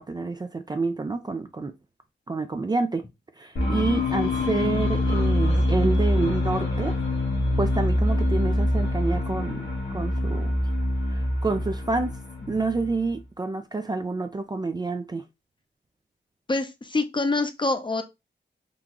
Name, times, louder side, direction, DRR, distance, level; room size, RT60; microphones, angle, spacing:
voice 1, 0.0-1.7 2.3-3.0 3.4-6.9 7.6-9.7 9.9-10.5 11.1-12.1 12.5-15.2, right 3 dB, 20° right, 0.4 m, -28 dB
sound 1, 3.6-13.2, left 1 dB, 70° left, 1.4 m, -25 dB
voice 2, 16.5-18.0, left 3 dB, 25° left, 0.6 m, -25 dB
3.7 x 2.3 x 2.9 m
cardioid pair, 65°, 19 cm